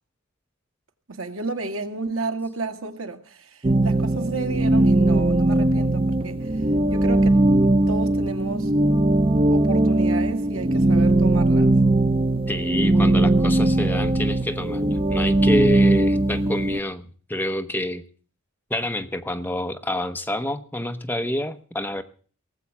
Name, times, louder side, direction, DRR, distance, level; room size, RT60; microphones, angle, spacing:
voice 1, 1.1-7.4 7.9-8.7 9.5-11.8, right 3 dB, 70° right, 1.8 m, -32 dB
sound 1, 3.6-16.8, right 2 dB, 25° right, 0.7 m, -19 dB
voice 2, 12.5-18.0 18.7-22.0, left 1 dB, 10° left, 0.8 m, -27 dB
18.5 x 7.9 x 7.2 m
head